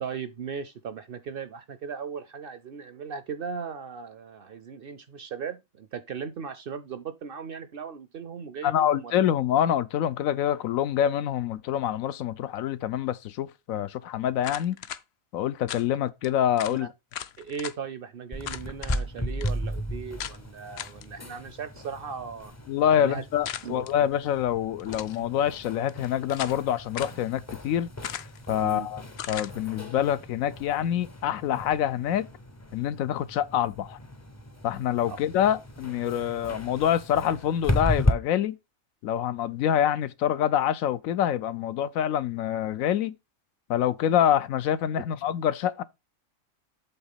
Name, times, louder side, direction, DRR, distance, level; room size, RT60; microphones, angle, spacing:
voice 1, 0.0-9.2 16.7-16.9 17.4-22.5 23.0-23.3 23.6-23.8 28.6-28.9 35.1-35.2, right 6 dB, 60° right, 0.6 m, -37 dB
voice 2, 8.6-14.8 15.3-16.9 22.7-27.9 28.5-29.0 29.3-32.3 32.7-34.0 34.6-38.6 39.0-43.1 43.7-45.8, left 10 dB, 90° left, 1.0 m, -26 dB
sound 1, 14.4-15.0 15.7-15.9 16.2-16.3 16.6-16.8 17.1-17.8 18.4-19.0 19.4-19.5 20.2-20.4 20.8-21.1 23.5-23.9 24.8-25.2 25.9-26.6 26.9-27.2 28.0-28.5 29.2-29.5, left 10 dB, 60° left, 0.7 m, -37 dB
sound 2, 18.3-38.1, left 1 dB, 25° left, 0.4 m, -35 dB
8.1 x 3.6 x 5.6 m
omnidirectional pair, 1.4 m